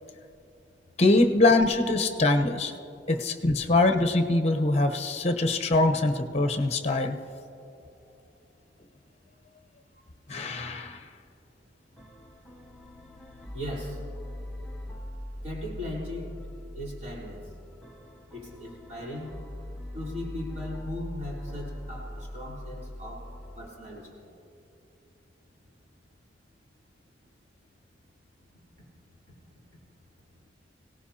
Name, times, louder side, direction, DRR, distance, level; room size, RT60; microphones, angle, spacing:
voice 1, 1.0-2.7 3.1-7.2 10.3-11.0, left 2 dB, 40° left, 6 dB, 1.0 m, -23 dB
sound 1, 12.0-23.7, left 1 dB, 5° left, 0.9 m, -41 dB
voice 2, 13.5-14.0 15.4-16.3 16.7-17.5 18.3-19.3 19.9-23.3 23.6-24.3, left 1 dB, 40° right, -5 dB, 3.8 m, -38 dB
24.5 x 18.0 x 2.9 m, 2.7 s
head